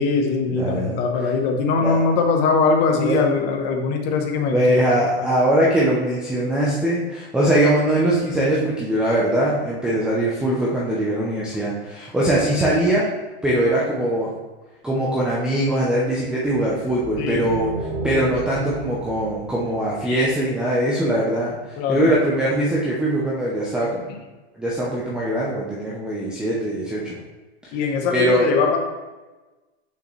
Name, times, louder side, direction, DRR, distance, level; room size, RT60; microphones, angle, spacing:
voice 1, 0.0-4.6 5.0-5.3 17.2-17.5 21.8-22.1 27.7-28.8, left 4 dB, 30° left, 3 dB, 0.9 m, -21 dB
voice 2, 0.5-1.3 1.8-2.0 3.0-3.2 4.5-13.1 13.4-14.3 14.8-24.0 24.5-27.2 27.6-27.7 28.1-28.4, right 1 dB, 5° right, -6 dB, 0.5 m, -21 dB
sound 1, 16.4-20.9, right 3 dB, 45° right, 1.1 m, -34 dB
6.6 x 5.6 x 3.1 m, 1.2 s
supercardioid pair, 155°, 32 cm